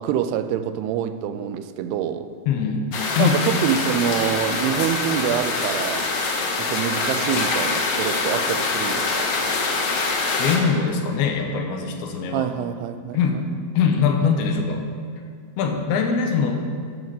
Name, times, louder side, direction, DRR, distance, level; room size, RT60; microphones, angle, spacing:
voice 1, 0.0-2.3 3.2-6.1 6.6-9.3 12.3-13.4, right 9 dB, 90° right, 10 dB, 2.6 m, -26 dB
voice 2, 2.5-2.9 3.2-3.4 10.4-12.5 13.1-13.4 13.7-14.8 15.6-16.6, left 6 dB, 80° left, 3 dB, 2.8 m, -22 dB
sound 1, 2.9-10.6, left 3 dB, 65° left, 2.0 m, -24 dB
12.5 x 5.3 x 6.1 m, 2.1 s
omnidirectional pair, 4.6 m